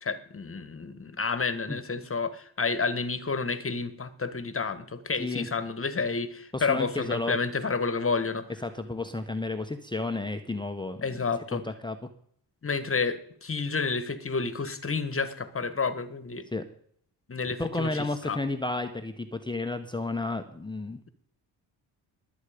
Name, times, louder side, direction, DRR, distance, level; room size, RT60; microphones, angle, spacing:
voice 1, 0.0-8.5 11.0-11.6 12.6-16.5 17.3-18.4, left 4 dB, 30° left, 13 dB, 1.6 m, -30 dB
voice 2, 6.5-7.4 8.6-11.0 11.5-12.0 16.5-16.6 17.6-21.0, left 2 dB, 10° left, 6 dB, 1.1 m, -32 dB
20.5 x 8.4 x 5.2 m, 0.63 s
cardioid pair, 80°, 43 cm